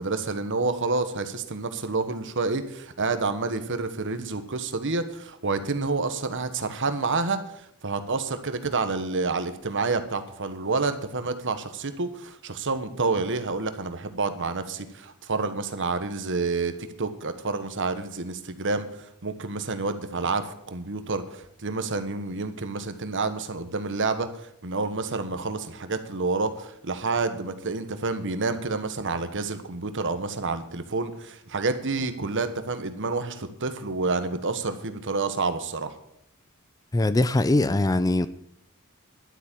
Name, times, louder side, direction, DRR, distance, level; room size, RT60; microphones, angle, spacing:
voice 1, 0.0-35.9, right 3 dB, 55° right, 10 dB, 1.3 m, -29 dB
voice 2, 36.9-38.3, left 2 dB, 15° left, 14 dB, 0.4 m, -21 dB
12.0 x 8.3 x 7.4 m, 0.72 s
head